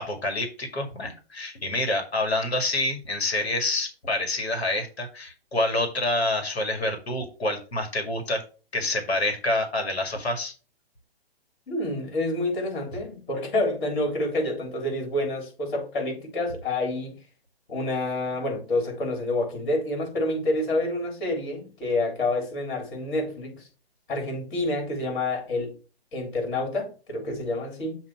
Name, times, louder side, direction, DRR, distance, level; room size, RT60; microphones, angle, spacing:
voice 1, 0.0-8.4 8.7-10.5, left 2 dB, 80° left, 2.1 m, -27 dB
voice 2, 11.7-17.1 17.7-23.7 24.1-25.8 26.1-28.0, left 2 dB, 55° left, 3.6 m, -28 dB
7.3 x 2.9 x 5.7 m
hypercardioid pair, 140°, 31 cm